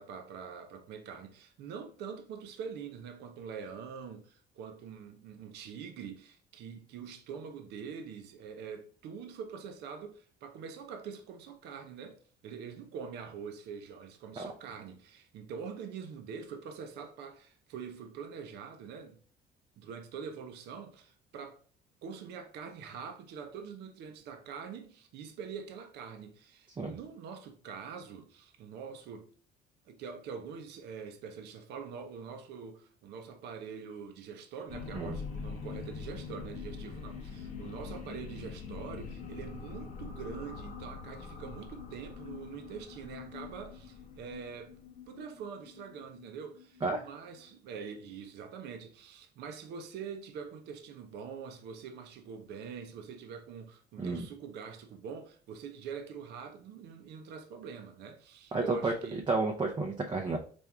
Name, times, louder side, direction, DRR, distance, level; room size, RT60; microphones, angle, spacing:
voice 1, 0.0-19.2 19.8-21.6 22.0-29.3 29.9-44.7 45.1-59.3, right 6 dB, 80° right, 0.7 m, -44 dB
sound 1, 34.7-47.5, left 5 dB, 50° left, 0.9 m, -44 dB
voice 2, 58.5-58.9 59.3-60.4, right 3 dB, 30° right, 0.6 m, -31 dB
4.5 x 2.6 x 3.4 m
cardioid pair, 110°, 17 cm